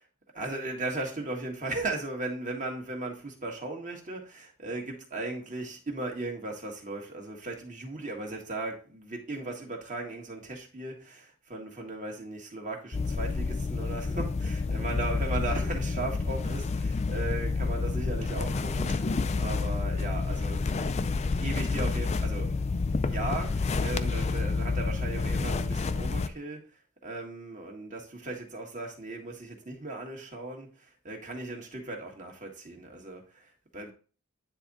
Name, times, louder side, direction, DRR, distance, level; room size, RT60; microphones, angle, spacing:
voice 1, 0.3-22.6 23.0-26.6 27.0-33.9, right 2 dB, 35° right, 1.7 m, -37 dB
sound 1, 12.9-26.3, left 4 dB, 30° left, 0.4 m, -29 dB
9.7 x 3.7 x 4.1 m
head